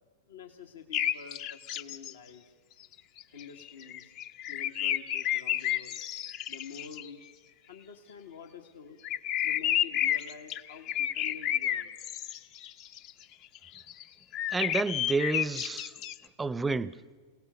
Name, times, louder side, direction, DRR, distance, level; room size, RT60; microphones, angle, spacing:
voice 1, 0.3-2.4 3.3-4.1 4.5-6.0 6.5-7.2 7.7-9.0 9.4-12.0, left 6 dB, 75° left, 1.7 m, -48 dB
sound 1, 0.9-2.1 2.8-2.9 3.2-7.1 9.0-13.1 13.6-14.0 14.3-16.2, left 11 dB, 45° left, 0.8 m, -31 dB
voice 2, 14.5-15.9 16.4-17.0, right 3 dB, 15° right, 0.7 m, -30 dB
27.5 x 18.0 x 6.9 m
hypercardioid pair, 105°, 0 cm